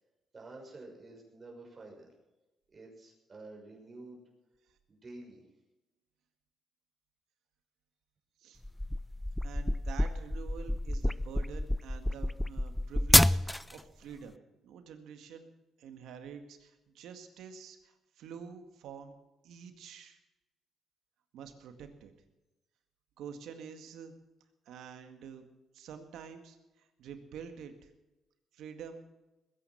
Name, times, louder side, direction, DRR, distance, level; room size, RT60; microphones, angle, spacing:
voice 1, 0.3-2.1 2.7-4.2 4.9-5.4, right 2 dB, 35° right, -1 dB, 6.3 m, -49 dB
sound 1, 8.6-13.8, left 1 dB, 10° left, 0.4 m, -28 dB
voice 2, 9.4-14.4 14.6-15.5 15.8-19.1 19.4-20.2 21.3-22.1 23.2-24.1 24.7-25.4 25.7-27.9 28.5-29.0, right 7 dB, 80° right, 7 dB, 2.0 m, -47 dB
21.0 x 9.9 x 5.9 m, 1.0 s
cardioid pair, 90°, 0 cm